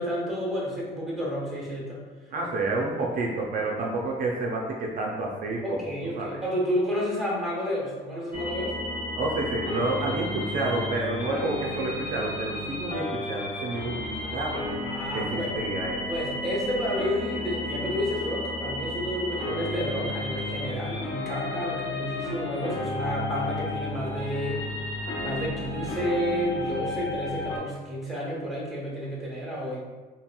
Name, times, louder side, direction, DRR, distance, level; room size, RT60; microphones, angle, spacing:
voice 1, 0.0-2.0 5.6-8.8 14.2-15.6 16.1-24.6 25.2-29.8, equal, ahead, -5 dB, 0.9 m, -31 dB
voice 2, 2.3-6.4 9.2-14.8 15.1-16.0, right 2 dB, 55° right, -1 dB, 0.5 m, -29 dB
sound 1, 8.3-27.6, left 2 dB, 30° left, 0.8 m, -33 dB
2.8 x 2.8 x 2.3 m, 1.3 s
cardioid pair, 110°, 17 cm